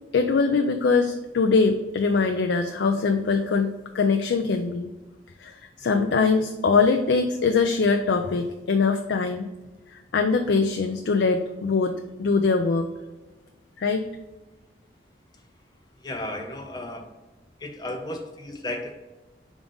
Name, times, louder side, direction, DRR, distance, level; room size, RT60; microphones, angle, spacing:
voice 1, 0.1-4.9 5.4-5.5 5.8-9.5 9.9-12.9 13.8-14.1, left 4 dB, 85° left, 5 dB, 0.4 m, -22 dB
voice 2, 16.0-17.1 17.6-18.9, left 1 dB, 25° left, 4 dB, 0.4 m, -34 dB
5.1 x 3.6 x 5.2 m, 1.1 s
head